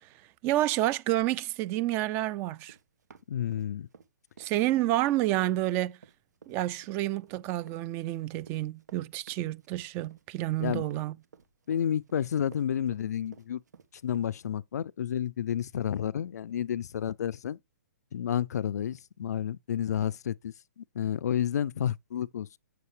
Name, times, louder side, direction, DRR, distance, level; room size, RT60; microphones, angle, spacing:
voice 1, 0.4-2.7 4.4-6.0 6.5-11.2, right 15 dB, 25° right, 0.4 m, -29 dB
Run, 2.6-4.1 4.4-14.3, right 6 dB, 85° right, 1.4 m, -54 dB
voice 2, 3.3-3.9 10.6-10.8 11.7-13.6 14.0-17.6 18.1-22.6, left 9 dB, 70° left, 0.4 m, -31 dB
7.7 x 6.8 x 3.2 m
hypercardioid pair, 145°, 9 cm